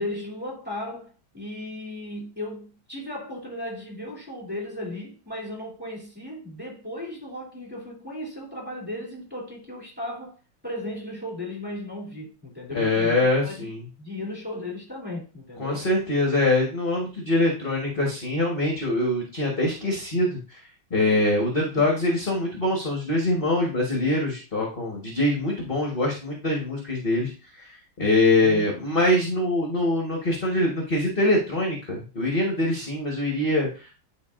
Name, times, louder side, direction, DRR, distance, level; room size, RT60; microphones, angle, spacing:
voice 1, 0.0-10.4 10.6-13.2 13.4-13.5 14.0-15.9 28.3-29.0, left 1 dB, 5° right, 2.5 m, -36 dB
voice 2, 12.7-13.8 15.6-20.6 20.9-27.3 27.6-33.9, left 1 dB, 30° left, 1.2 m, -24 dB
9.6 x 4.5 x 2.5 m
omnidirectional pair, 2.3 m